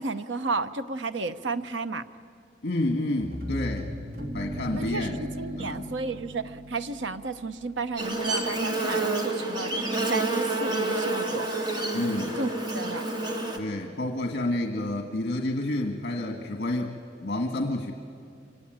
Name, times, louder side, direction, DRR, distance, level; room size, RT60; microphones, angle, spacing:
voice 1, 0.0-2.0 4.7-9.8 10.1-11.5 12.1-13.1, right 3 dB, 85° right, 10 dB, 0.9 m, -32 dB
voice 2, 2.6-3.9 4.3-5.2 5.5-5.9 11.9-12.4 13.6-17.9, left 1 dB, 55° left, 3 dB, 1.6 m, -29 dB
sound 1, 3.2-8.0, right 1 dB, 55° right, 2.5 m, -37 dB
Buzz, 8.0-13.6, right 2 dB, 25° right, 2.1 m, -29 dB
25.0 x 24.0 x 9.0 m, 2.4 s
head